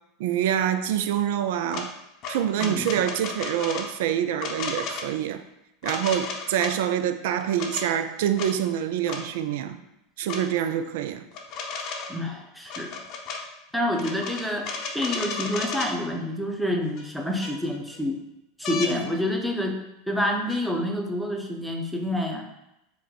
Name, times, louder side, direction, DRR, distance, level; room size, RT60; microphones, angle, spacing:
voice 1, 0.2-1.9 2.3-5.4 5.8-9.8 10.2-11.2, right 10 dB, 65° right, 0.3 m, -26 dB
sound 1, 1.7-1.9 2.2-3.9 4.4-5.1 5.8-6.7 7.4-7.9 8.4-8.5 9.1-9.2 10.3-10.4 11.3-12.2 12.7-13.4 13.9-15.9 17.0-17.1 17.4-18.0 18.6-18.9 20.5-20.6, left 5 dB, 50° left, 0.6 m, -33 dB
voice 2, 2.6-3.0 12.1-13.0 13.7-18.2 18.6-19.8 20.1-22.5, left 1 dB, ahead, 0.7 m, -28 dB
4.6 x 2.2 x 3.8 m
hypercardioid pair, 85°, 0 cm